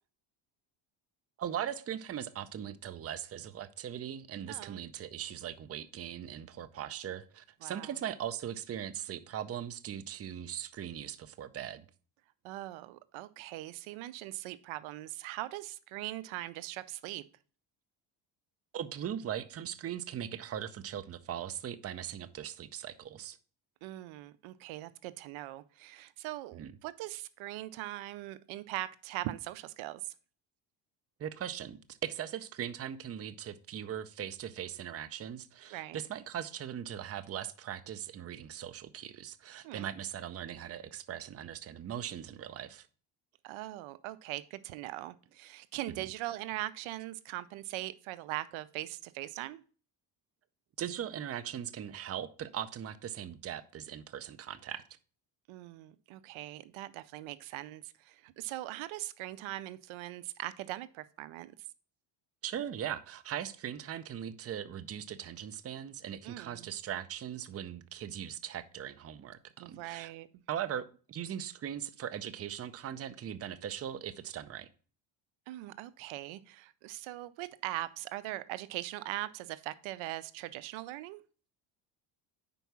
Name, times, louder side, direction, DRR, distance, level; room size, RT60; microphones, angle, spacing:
voice 1, 1.4-11.8 18.7-23.4 26.5-26.7 31.2-42.9 45.9-46.0 50.8-54.8 62.4-70.1 70.5-74.7, right 10 dB, 30° right, 0.6 m, -40 dB
voice 2, 4.5-4.8 7.6-7.9 12.4-17.2 23.8-30.1 35.7-36.0 39.6-39.9 43.4-49.6 55.5-61.5 66.2-66.7 69.6-70.3 75.5-81.2, right 16 dB, 80° right, 0.6 m, -41 dB
5.3 x 4.6 x 5.8 m
cardioid pair, 90°, 47 cm